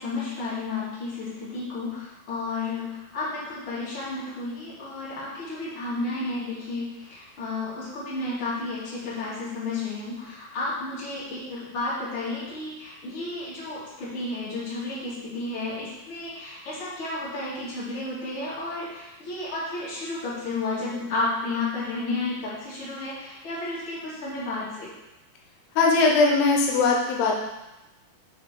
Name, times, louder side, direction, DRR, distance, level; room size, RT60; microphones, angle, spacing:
voice 1, 0.0-24.9, left 2 dB, 35° left, -9 dB, 2.6 m, -32 dB
voice 2, 25.8-27.3, left 3 dB, 85° left, 0 dB, 2.8 m, -20 dB
7.1 x 3.8 x 5.1 m, 0.96 s
omnidirectional pair, 4.6 m